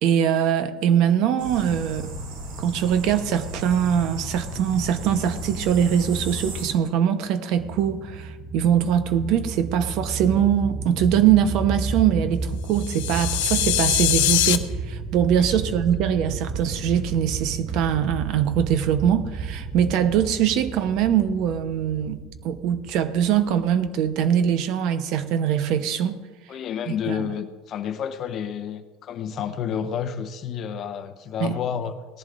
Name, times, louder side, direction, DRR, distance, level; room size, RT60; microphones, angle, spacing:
voice 1, 0.0-2.1 2.6-22.2 22.4-26.2 27.0-27.2 31.4-31.6, right 9 dB, 50° right, 10 dB, 0.9 m, -22 dB
sound 1, 1.4-6.7, right 1 dB, 70° right, 4.2 m, -34 dB
sound 2, 7.5-24.5, right 4 dB, 10° right, 1.5 m, -32 dB
sound 3, 12.7-14.6, left 14 dB, 85° left, 0.8 m, -22 dB
voice 2, 26.5-32.2, left 8 dB, 35° left, 8 dB, 0.8 m, -30 dB
19.0 x 11.0 x 2.5 m, 1.3 s
supercardioid pair, 150°, 0 cm